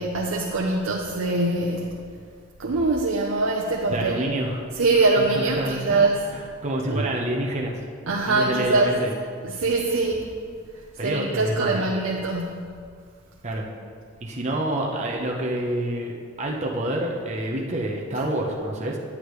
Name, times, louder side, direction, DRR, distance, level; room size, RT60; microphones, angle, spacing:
voice 1, 0.0-2.0 2.6-4.3 4.7-6.2 6.9-7.1 8.1-9.0 9.4-10.2 11.0-12.7, right 3 dB, 85° right, -2 dB, 0.7 m, -23 dB
voice 2, 3.9-4.7 5.3-6.1 6.3-7.8 8.3-9.1 11.0-11.9 13.4-13.6 14.2-19.0, right 1 dB, 35° right, -1 dB, 0.8 m, -28 dB
9.8 x 8.6 x 3.2 m, 2.2 s
head